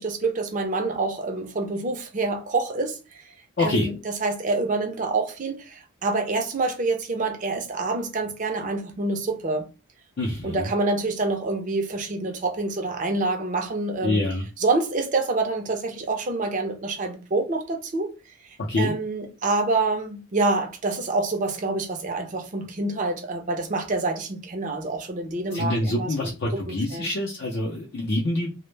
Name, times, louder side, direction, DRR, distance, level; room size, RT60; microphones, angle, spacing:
voice 1, 0.0-3.3 3.6-9.6 10.4-14.3 14.6-18.1 18.4-27.1, right 3 dB, 35° right, 0.5 m, -27 dB
voice 2, 3.6-3.9 10.2-10.7 14.0-14.4 18.7-18.9 25.5-28.5, left 1 dB, 50° left, 0.5 m, -25 dB
2.0 x 2.0 x 3.1 m
head